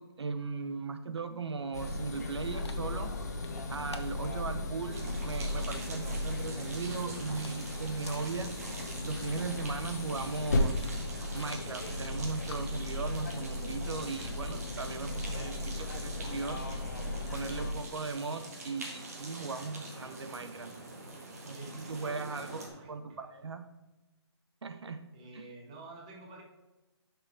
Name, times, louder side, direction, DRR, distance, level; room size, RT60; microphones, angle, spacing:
voice 1, 0.0-3.2 3.7-8.5 9.0-10.9 11.3-16.7 17.3-20.7 21.4-23.7 24.6-25.4, right 4 dB, 75° right, 9 dB, 0.8 m, -38 dB
sound 1, 1.7-17.7, left 2 dB, 40° left, 1.0 m, -36 dB
Dog, 2.1-15.0, left 4 dB, 75° left, 1.1 m, -55 dB
sound 2, 4.9-22.7, right 2 dB, 35° right, 1.5 m, -45 dB
voice 2, 21.5-23.3 25.1-26.4, right 2 dB, 15° right, -1 dB, 0.8 m, -50 dB
10.0 x 6.1 x 3.6 m, 1.1 s
hypercardioid pair, 180°, 14 cm